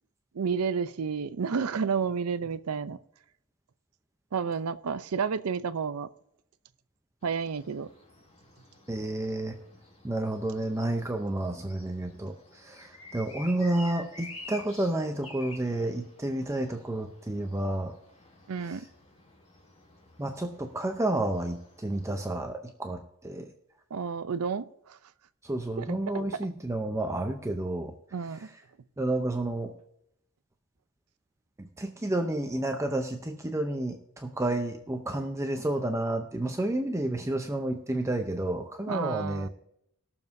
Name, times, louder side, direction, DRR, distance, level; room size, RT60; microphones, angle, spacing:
voice 1, 0.3-3.0 4.3-6.1 7.2-7.9 18.5-18.8 23.9-25.0 25.8-25.9 28.1-28.5 38.9-39.5, right 6 dB, 75° right, 14 dB, 0.5 m, -31 dB
sound 1, 7.2-22.3, left 2 dB, 30° left, 1.7 m, -50 dB
voice 2, 8.9-9.6 10.0-18.0 18.6-18.8 20.2-23.5 25.4-28.0 28.3-28.4 29.0-29.7 31.6-39.5, right 1 dB, 15° right, 4 dB, 0.6 m, -30 dB
20.5 x 7.0 x 2.6 m, 0.76 s
head